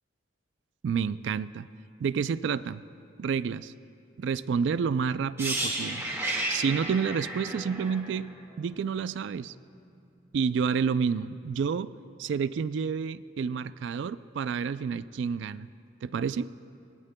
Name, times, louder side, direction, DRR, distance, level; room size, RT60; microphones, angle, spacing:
voice 1, 0.8-1.7 2.0-2.8 3.2-3.7 4.2-6.0 6.5-9.5 10.3-11.9 12.2-15.7 16.0-16.5, right 6 dB, 65° right, 15 dB, 0.3 m, -29 dB
sound 1, 5.4-9.2 9.5-9.7, right 1 dB, 15° right, 1.8 m, -33 dB
20.5 x 18.0 x 2.2 m, 2.6 s
head